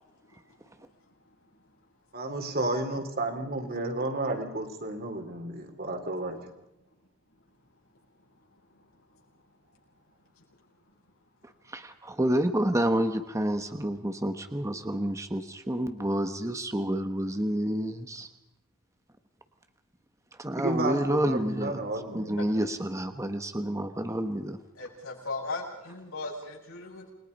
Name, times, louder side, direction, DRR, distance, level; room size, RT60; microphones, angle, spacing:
voice 1, 2.1-6.4 20.6-22.4, right 2 dB, 50° right, 6 dB, 3.7 m, -32 dB
voice 2, 11.7-18.3 20.4-21.8 22.1-24.6, right 1 dB, 15° right, 7 dB, 1.2 m, -29 dB
voice 3, 24.7-27.1, left 3 dB, 80° left, -2 dB, 7.9 m, -37 dB
29.0 x 21.5 x 5.4 m, 0.85 s
head